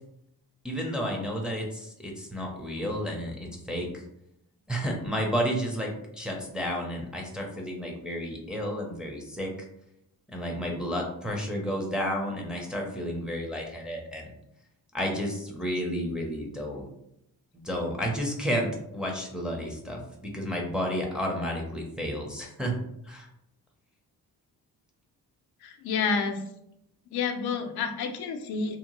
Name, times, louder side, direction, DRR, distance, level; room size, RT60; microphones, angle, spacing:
voice 1, 0.6-3.9 4.7-9.5 10.3-14.3 14.9-16.9 17.5-22.7 23.1-23.3, equal, ahead, -1 dB, 0.5 m, -31 dB
voice 2, 25.6-26.4 27.1-28.8, left 5 dB, 80° left, 5 dB, 0.5 m, -29 dB
2.7 x 2.1 x 2.9 m, 0.78 s
cardioid pair, 110°, 37 cm